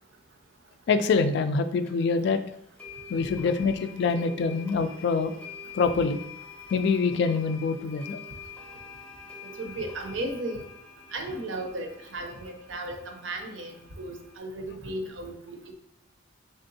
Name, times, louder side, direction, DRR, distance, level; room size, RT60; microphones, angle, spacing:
voice 1, 0.9-2.4 3.1-5.3 5.7-6.2 6.7-8.2, left 4 dB, 60° left, 9 dB, 0.3 m, -25 dB
sound 1, 1.8-1.9 2.8-14.4, left 5 dB, 5° left, 0.7 m, -46 dB
voice 2, 9.4-10.7 11.1-15.7, right 1 dB, 70° right, 4 dB, 0.6 m, -35 dB
3.6 x 3.4 x 2.7 m, 0.74 s
head